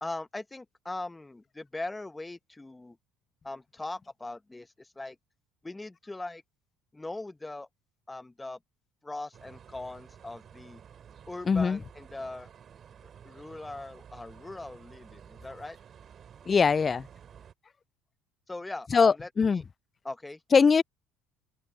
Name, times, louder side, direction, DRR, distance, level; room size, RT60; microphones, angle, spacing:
voice 1, 0.0-3.0 3.4-5.2 5.6-6.4 6.9-7.7 8.1-8.6 9.0-10.8 11.3-12.5 13.2-15.8 18.5-19.6 20.0-20.4, left 2 dB, 15° left, 1.0 m, -40 dB
sound 1, 9.3-17.5, right 8 dB, 45° right, 4.2 m, -52 dB
voice 2, 11.5-11.8 16.5-17.1 18.9-19.6 20.5-20.8, left 5 dB, 35° left, 0.3 m, -22 dB
hypercardioid pair, 70°, 0 cm